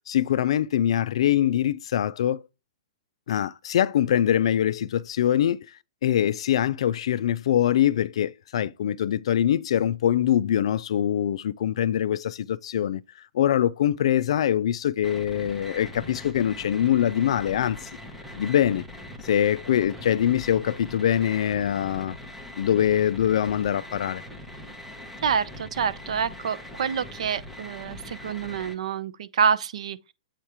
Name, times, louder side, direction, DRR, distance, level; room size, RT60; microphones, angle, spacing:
voice 1, 0.1-2.4 3.3-5.7 6.0-13.0 13.3-17.9 18.3-18.8 19.2-22.2 22.6-24.2, left 10 dB, 50° left, 0.4 m, -23 dB
sound 1, 15.0-28.7, left 1 dB, ahead, 0.8 m, -41 dB
voice 2, 25.2-30.0, right 7 dB, 60° right, 0.7 m, -27 dB
8.1 x 2.9 x 4.8 m
hypercardioid pair, 170°, 4 cm